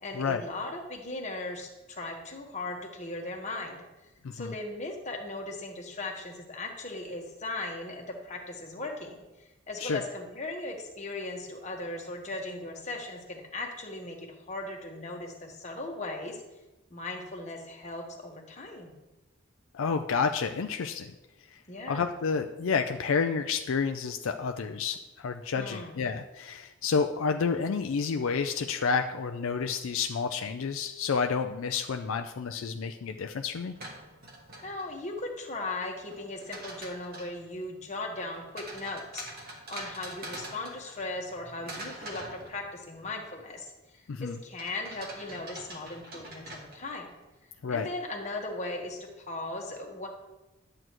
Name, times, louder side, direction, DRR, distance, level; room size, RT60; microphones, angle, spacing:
voice 1, 0.0-3.8 4.0-16.4 16.9-18.9 21.7-22.2 25.6-26.0 34.6-47.1 47.7-50.1, left 2 dB, 35° left, 1 dB, 1.3 m, -38 dB
voice 2, 19.7-21.1 21.9-33.8 44.1-44.4 47.6-47.9, left 5 dB, 75° left, 6 dB, 0.4 m, -30 dB
sound 1, 33.6-35.1 36.1-37.4 38.6-41.3 41.7-43.0 44.6-47.1, right 1 dB, 45° right, 1.4 m, -44 dB
11.0 x 7.7 x 3.0 m, 1.1 s
head